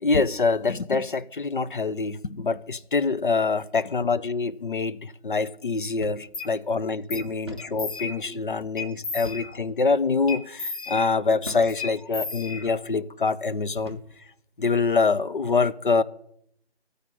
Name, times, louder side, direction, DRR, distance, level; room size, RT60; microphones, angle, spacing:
voice 1, 0.0-14.0 14.6-16.0, left 4 dB, 50° left, 0.6 m, -25 dB
sound 1, 6.0-6.3 6.6-6.7 7.5-7.8 9.2-9.6 10.3-10.5 11.4-11.8 12.5-12.7 13.8-14.2, equal, 25° right, 0.6 m, -40 dB
sound 2, 6.3-6.5 7.1-7.3 7.6-8.4 8.8-9.8 10.3-11.4 11.8-13.0, left 4 dB, 90° left, 1.7 m, -35 dB
14.5 x 5.0 x 9.0 m
hypercardioid pair, 180°, 32 cm